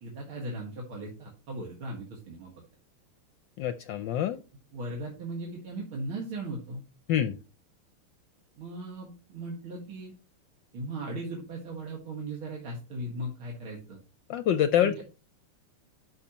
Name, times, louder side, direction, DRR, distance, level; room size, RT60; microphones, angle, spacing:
voice 1, 0.0-2.5 4.7-6.8 8.6-10.1 10.7-14.0 14.8-15.0, right 2 dB, 70° right, -1 dB, 2.6 m, -38 dB
voice 2, 3.6-4.4 7.1-7.4 14.3-15.0, left 10 dB, 70° left, 10 dB, 1.2 m, -26 dB
12.5 x 5.7 x 2.9 m, 0.32 s
omnidirectional pair, 2.4 m